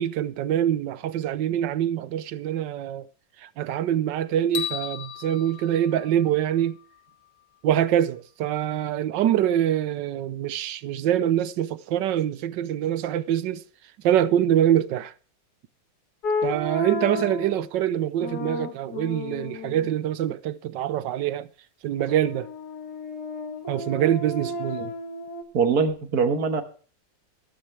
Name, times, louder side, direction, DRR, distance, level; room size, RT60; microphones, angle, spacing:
voice 1, 0.0-3.0 3.4-6.8 7.6-13.6 14.0-15.1 16.4-21.5 21.8-22.5 23.7-24.9, right 11 dB, 80° right, 1.4 m, -24 dB
sound 1, 4.5-6.8, left 10 dB, 90° left, 2.4 m, -35 dB
sound 2, 16.2-17.6 18.2-20.0 22.1-25.4, left 2 dB, 60° left, 2.5 m, -32 dB
voice 2, 25.5-26.6, right 5 dB, 55° right, 2.0 m, -22 dB
14.5 x 13.0 x 3.3 m
omnidirectional pair, 2.0 m